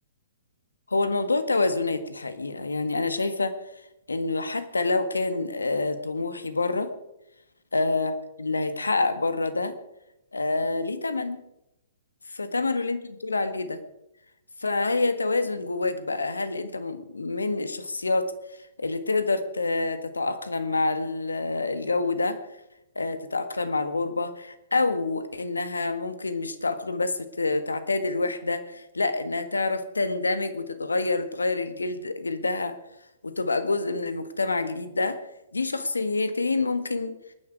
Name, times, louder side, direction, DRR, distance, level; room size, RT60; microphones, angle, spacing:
voice 1, 0.9-3.6 4.1-6.9 7.7-8.1 8.4-9.7 10.3-11.4 12.3-13.8 14.6-18.3 18.8-22.4 22.9-32.7 33.2-35.2 35.5-37.1, left 3 dB, 80° left, 9 dB, 1.6 m, -27 dB
22.5 x 9.8 x 4.8 m, 0.88 s
figure-of-eight pair, 120°, 0 cm